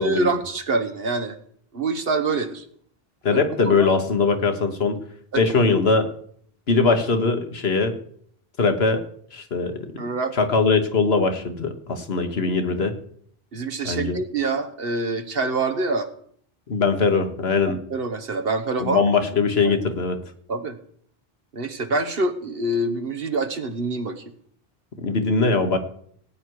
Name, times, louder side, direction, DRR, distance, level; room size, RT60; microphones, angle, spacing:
voice 1, 0.0-1.4 1.7-2.6 3.3-3.9 5.3-5.4 10.0-10.3 12.1-12.2 13.5-16.1 17.9-19.0 19.6-19.8 20.5-20.8 21.5-24.2, right 3 dB, 65° right, 8 dB, 1.5 m, -26 dB
voice 2, 3.2-5.0 5.4-6.1 6.7-8.0 8.6-9.0 9.3-10.0 10.3-13.0 13.8-14.2 16.7-17.8 18.8-20.2 25.0-25.8, left 4 dB, 80° left, 6 dB, 1.7 m, -21 dB
18.0 x 9.3 x 4.8 m, 0.63 s
omnidirectional pair, 1.0 m